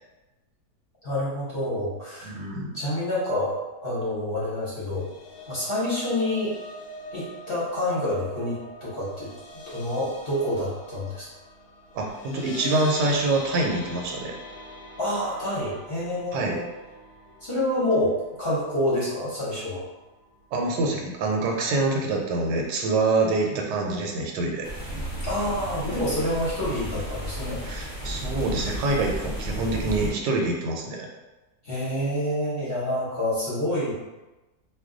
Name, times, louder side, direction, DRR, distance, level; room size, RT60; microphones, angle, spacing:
voice 1, 1.0-2.3 2.6-3.6 3.8-5.1 5.5-6.6 7.1-9.3 9.7-11.3 15.0-16.7 17.4-19.8 25.2-27.8 31.6-33.9, left 1 dB, 45° left, -8 dB, 0.9 m, -27 dB
voice 2, 2.2-2.7 11.9-14.4 16.3-16.6 20.5-24.7 27.6-31.1, right 2 dB, 85° right, 0 dB, 1.2 m, -26 dB
sound 1, 4.7-18.9 19.3-19.5 19.8-19.9, left 1 dB, 75° left, 0.6 m, -42 dB
sound 2, 24.6-30.1, right 1 dB, 25° left, 0.5 m, -33 dB
2.6 x 2.2 x 3.6 m, 1.1 s
omnidirectional pair, 1.8 m